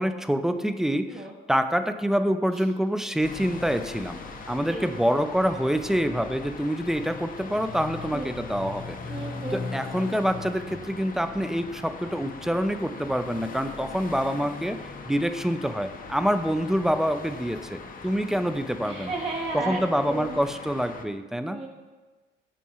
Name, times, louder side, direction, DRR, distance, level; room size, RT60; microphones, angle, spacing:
voice 1, 0.0-4.2 4.5-9.0 9.5-14.8 15.1-19.2 19.5-21.6, equal, ahead, 9 dB, 0.3 m, -26 dB
sound 1, 3.2-21.1, left 4 dB, 45° left, 0.6 m, -40 dB
voice 2, 9.1-9.6 18.8-19.8 20.1-20.4 21.5-21.7, right 3 dB, 30° right, -2 dB, 0.6 m, -33 dB
7.2 x 4.6 x 2.9 m, 1.3 s
cardioid pair, 90°, 20 cm